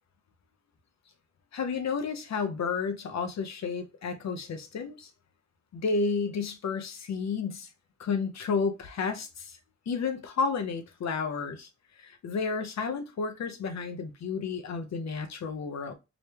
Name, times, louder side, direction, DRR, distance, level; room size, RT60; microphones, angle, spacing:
voice 1, 1.5-5.1 5.7-7.7 8.0-9.6 9.9-11.7 12.0-15.9, left 5 dB, 65° left, 0.8 m, -31 dB
4.9 x 2.2 x 3.3 m
cardioid pair, 65°, 29 cm